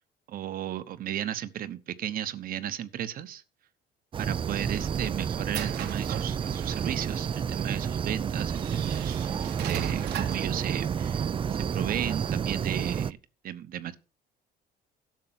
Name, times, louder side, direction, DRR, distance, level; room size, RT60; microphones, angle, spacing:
voice 1, 0.3-3.4 4.2-11.2 11.5-13.2 13.4-14.0, right 11 dB, 60° right, 1.0 m, -35 dB
sound 1, 4.1-13.1, right 7 dB, 30° right, 0.4 m, -30 dB
sound 2, 4.5-6.9 7.8-7.9 8.5-10.5, right 10 dB, 75° right, 1.2 m, -39 dB
12.0 x 6.8 x 5.7 m
cardioid pair, 110°, 17 cm